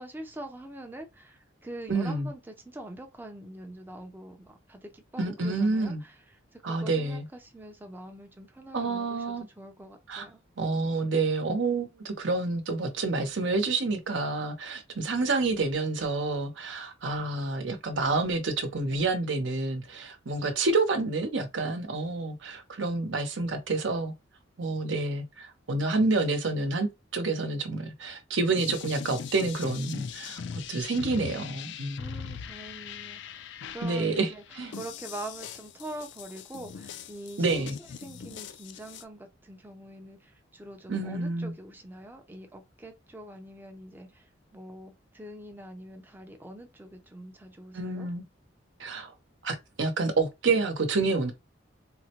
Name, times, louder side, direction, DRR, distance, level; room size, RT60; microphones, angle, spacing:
voice 1, 0.0-6.2 6.5-9.2 9.6-10.4 32.0-34.4 34.7-37.6 38.0-48.1, right 1 dB, 10° right, 0.5 m, -44 dB
voice 2, 1.9-2.3 5.2-6.0 6.6-7.3 8.7-9.5 10.1-10.2 10.6-24.1 24.6-32.0 33.8-34.7 37.4-37.8 40.9-41.5 47.7-48.2 48.8-49.1 49.4-51.3, right 3 dB, 75° right, 0.8 m, -28 dB
sound 1, 28.6-39.0, left 7 dB, 65° left, 0.4 m, -41 dB
3.8 x 2.1 x 2.8 m
head